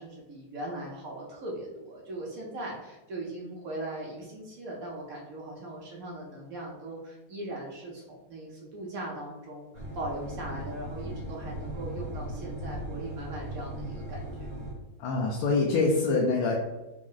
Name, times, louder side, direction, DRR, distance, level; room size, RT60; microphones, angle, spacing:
voice 1, 0.0-14.5, right 1 dB, 70° right, -3 dB, 0.8 m, -39 dB
sound 1, 9.7-14.7, right 1 dB, 40° left, 1.0 m, -38 dB
voice 2, 15.0-16.6, left 3 dB, 85° left, -2 dB, 1.5 m, -25 dB
4.6 x 2.0 x 3.8 m, 1.1 s
omnidirectional pair, 2.3 m